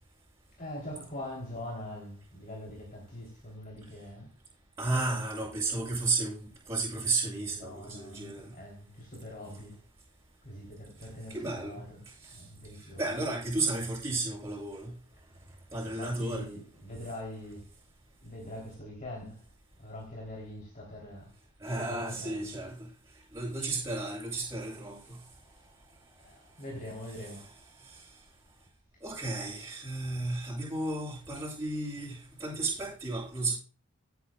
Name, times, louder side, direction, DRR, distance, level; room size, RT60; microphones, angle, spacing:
voice 1, 0.6-4.3 4.9-5.2 7.5-9.8 10.4-13.1 14.1-14.3 15.9-17.7 18.2-19.4 19.8-21.3 21.7-22.5 26.2-27.5, left 1 dB, 40° left, 3.4 m, -43 dB
voice 2, 4.8-8.5 11.3-11.8 13.0-14.9 15.7-16.4 21.6-22.9 23.3-25.2 29.0-33.5, right 2 dB, 15° right, 7.5 m, -33 dB
17.5 x 9.6 x 2.4 m
head